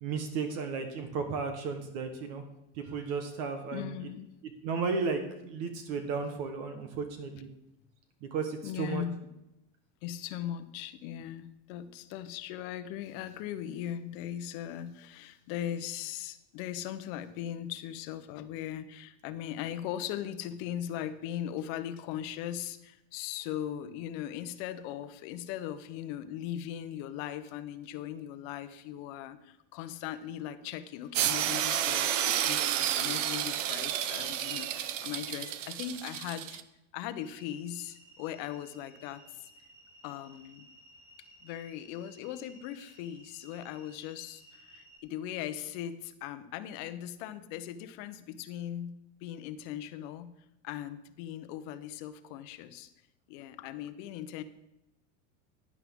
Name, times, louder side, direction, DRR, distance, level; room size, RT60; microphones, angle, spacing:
voice 1, 0.0-2.4 2.7-4.0 4.6-7.5 8.2-9.0, right 5 dB, 45° right, 6 dB, 1.2 m, -34 dB
voice 2, 3.7-4.3 8.6-9.2 10.0-36.6 36.9-39.5 40.0-40.7 41.4-50.3 50.6-52.9 53.3-54.4, left 11 dB, 45° left, 12 dB, 0.8 m, -39 dB
lixadeira elétrica, 31.1-36.6, right 11 dB, 90° right, 0.9 m, -31 dB
sound 1, 37.2-45.0, right 1 dB, 10° right, 2.6 m, -57 dB
12.0 x 10.5 x 3.6 m, 0.89 s
supercardioid pair, 160°, 37 cm